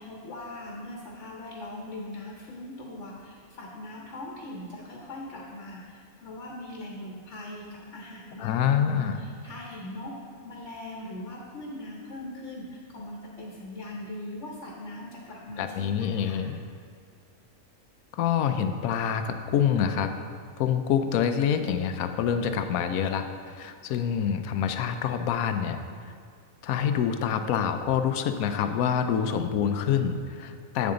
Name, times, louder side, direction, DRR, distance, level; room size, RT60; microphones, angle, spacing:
voice 1, 0.0-10.1 10.4-16.4, left 1 dB, 60° left, -2 dB, 1.3 m, -40 dB
voice 2, 8.4-9.2 15.6-16.6 18.1-20.1 20.6-26.1 26.6-30.9, left 8 dB, 85° left, 8 dB, 1.0 m, -26 dB
8.6 x 7.1 x 3.8 m, 2.3 s
omnidirectional pair, 1.5 m